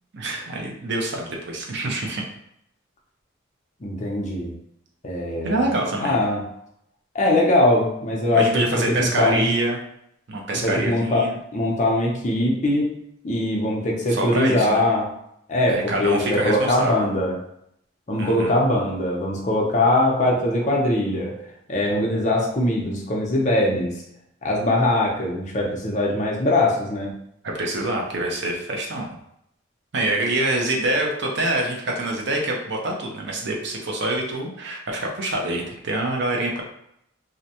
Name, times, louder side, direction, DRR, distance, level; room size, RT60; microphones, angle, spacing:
voice 1, 0.1-2.2 5.4-6.2 8.3-9.8 10.3-11.3 14.1-14.9 15.7-17.1 18.2-18.6 27.5-29.1 29.9-36.6, right 2 dB, 55° right, 0 dB, 0.5 m, -25 dB
voice 2, 3.8-4.5 5.0-5.6 6.0-6.5 7.1-9.5 10.6-12.9 13.2-15.1 15.5-17.4 18.1-21.4 21.7-24.0 24.4-27.2, left 1 dB, 35° left, -2 dB, 0.5 m, -21 dB
2.6 x 2.1 x 2.7 m, 0.74 s
head